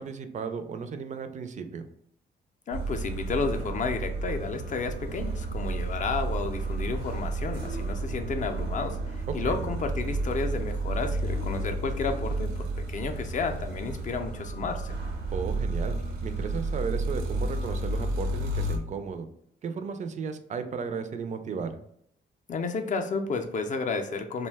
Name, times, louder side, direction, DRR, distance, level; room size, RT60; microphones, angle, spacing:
voice 1, 0.0-1.9 9.4-9.6 15.3-16.0 16.2-19.3 19.6-21.8, right 5 dB, 40° right, 8 dB, 0.4 m, -34 dB
voice 2, 2.7-15.0 22.5-24.5, left 4 dB, 40° left, 5 dB, 0.4 m, -32 dB
sound 1, 2.7-18.8, right 2 dB, 90° right, 0.6 m, -31 dB
2.5 x 2.1 x 3.3 m, 0.70 s
cardioid pair, 90°, 20 cm